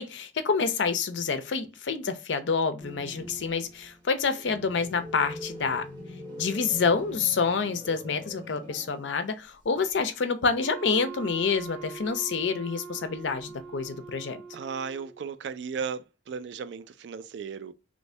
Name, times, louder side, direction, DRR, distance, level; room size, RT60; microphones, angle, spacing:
voice 1, 0.0-5.9 6.4-14.4, left 5 dB, 75° left, 0.5 m, -28 dB
sound 1, 2.8-9.3 9.6-9.7 11.4-12.1 13.1-13.8, left 1 dB, 25° right, 1.0 m, -44 dB
Wind instrument woodwind instrument, 10.6-15.3, right 5 dB, ahead, 1.1 m, -43 dB
voice 2, 14.5-17.7, right 6 dB, 65° right, 0.3 m, -35 dB
3.1 x 2.6 x 3.2 m
head